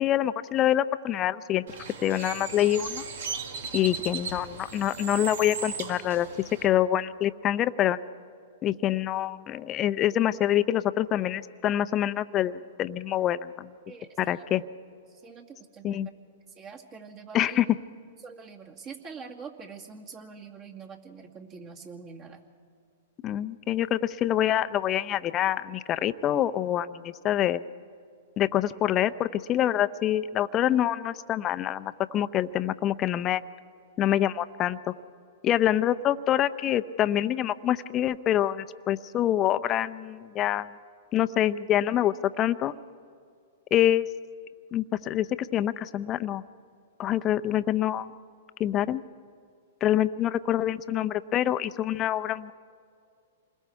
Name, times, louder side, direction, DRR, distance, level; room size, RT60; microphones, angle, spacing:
voice 1, 0.0-1.6 2.0-3.0 3.7-6.3 6.6-8.0 8.6-13.7 14.2-14.6 15.8-16.1 17.3-17.7 23.2-27.6 28.4-33.4 34.0-34.9 35.4-40.7 41.1-42.7 43.7-44.1 44.7-46.4 47.0-48.1 48.6-49.0 49.8-52.5, left 12 dB, 30° left, 13 dB, 0.6 m, -26 dB
Bird, 1.7-6.7, right 5 dB, 70° right, 1.9 m, -37 dB
voice 2, 13.9-14.5 15.1-16.1 16.5-17.6 18.2-22.4, right 5 dB, 35° right, 1 dB, 2.3 m, -45 dB
27.5 x 21.0 x 4.7 m, 2.3 s
hypercardioid pair, 120°, 0 cm